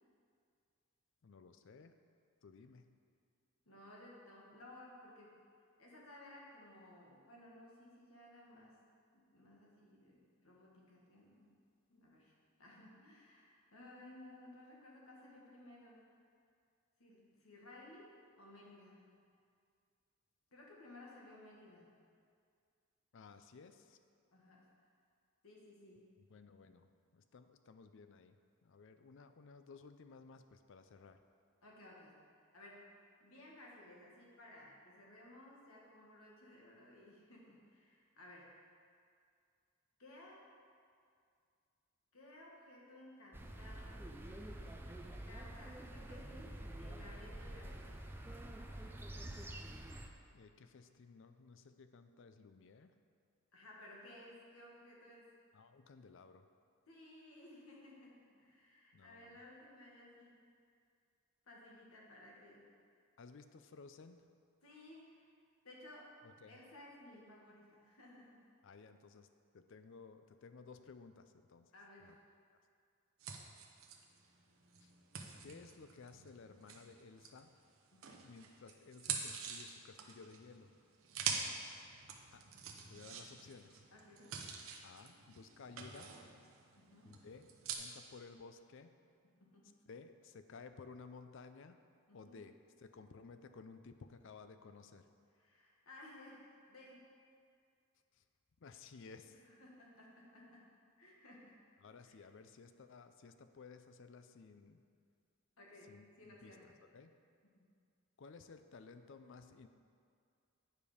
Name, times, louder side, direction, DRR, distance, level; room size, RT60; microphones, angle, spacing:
voice 1, 1.2-2.0 2.4-2.9 23.1-24.0 26.2-31.2 50.3-52.9 55.5-56.5 58.9-59.4 63.2-64.3 66.2-66.6 68.6-69.3 69.5-71.7 72.0-72.2 74.8-74.9 75.4-77.5 78.2-80.7 82.3-82.4 82.9-83.8 84.8-86.1 87.0-87.5 87.7-89.0 89.9-91.8 92.1-95.1 98.1-98.2 98.6-99.4 101.8-104.8 105.9-107.2 108.2-109.7, left 4 dB, 60° left, 9 dB, 0.4 m, -56 dB
voice 2, 3.7-5.4 5.8-8.8 9.1-11.6 11.9-16.0 17.0-19.3 20.5-21.9 24.3-24.7 25.4-26.2 31.6-32.9 33.2-38.6 40.0-40.5 42.1-44.0 45.2-48.1 53.5-55.3 56.9-60.5 61.4-62.7 64.6-65.3 65.6-66.2 66.4-68.4 71.7-72.2 77.9-78.3 83.9-84.4 86.7-87.2 89.4-89.8 92.1-92.4 95.4-97.1 99.3-100.7 101.0-101.6 102.0-102.2 105.6-106.7 107.6-107.7, left 1 dB, 75° left, -3 dB, 1.6 m, -58 dB
sound 1, 43.3-50.1, right 1 dB, 10° right, 0.4 m, -48 dB
sound 2, 73.2-77.6 78.0-87.7, right 6 dB, 70° right, 0.8 m, -46 dB
9.4 x 5.1 x 5.0 m, 2.3 s
head